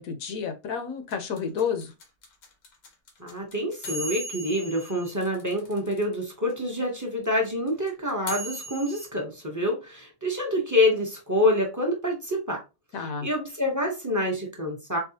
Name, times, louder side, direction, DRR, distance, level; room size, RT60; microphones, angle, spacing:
voice 1, 0.0-1.9 12.9-13.3, left 6 dB, 65° left, 1.0 m, -30 dB
sound 1, 1.1-6.2 6.5-6.6 6.8-9.1, right 1 dB, 85° left, 1.6 m, -38 dB
voice 2, 3.2-12.6 13.2-15.0, left 1 dB, 20° right, 0.6 m, -27 dB
4.6 x 2.3 x 2.8 m
omnidirectional pair, 1.8 m